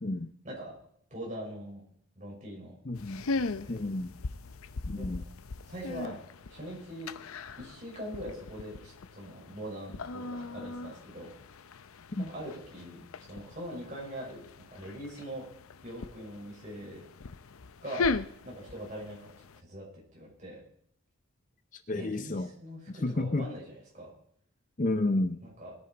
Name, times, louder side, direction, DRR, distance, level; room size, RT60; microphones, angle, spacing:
voice 1, 0.4-0.8 1.1-1.8 2.2-2.7 3.3-3.8 5.0-5.2 5.7-6.2 6.5-7.1 7.6-11.3 12.2-15.5 15.8-17.0 17.8-18.1 18.4-20.6 21.9-24.1 25.4-25.7, equal, 35° right, -3 dB, 5.9 m, -42 dB
sound 1, 2.9-19.6, left 3 dB, 85° left, 0.6 m, -39 dB
voice 2, 2.9-3.2 3.7-4.1 4.9-5.2 12.2-12.3 21.9-22.5 23.0-23.4 24.8-25.4, left 2 dB, 35° left, 11 dB, 0.6 m, -30 dB
20.5 x 9.8 x 4.5 m, 0.65 s
head